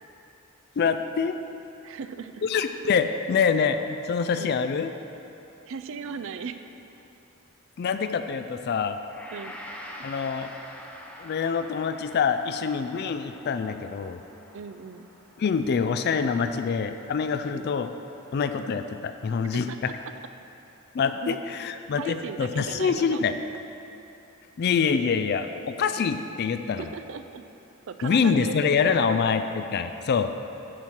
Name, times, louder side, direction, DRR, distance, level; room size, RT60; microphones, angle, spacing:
voice 1, 0.8-1.4 2.4-4.9 7.8-9.0 10.0-10.5 11.2-14.2 15.4-17.9 18.3-19.9 20.9-23.3 24.6-26.8 28.0-30.3, left 6 dB, 45° left, 9 dB, 0.3 m, -25 dB
voice 2, 1.8-2.4 4.3-4.6 5.7-6.7 9.3-9.6 14.5-15.1 17.5-17.8 19.5-19.9 21.2-21.4 22.0-23.3 26.8-27.4 27.9-29.2, right 6 dB, 60° right, 10 dB, 0.4 m, -37 dB
Gong, 9.1-18.3, equal, 5° left, 0.6 m, -46 dB
11.0 x 4.4 x 6.3 m, 2.9 s
head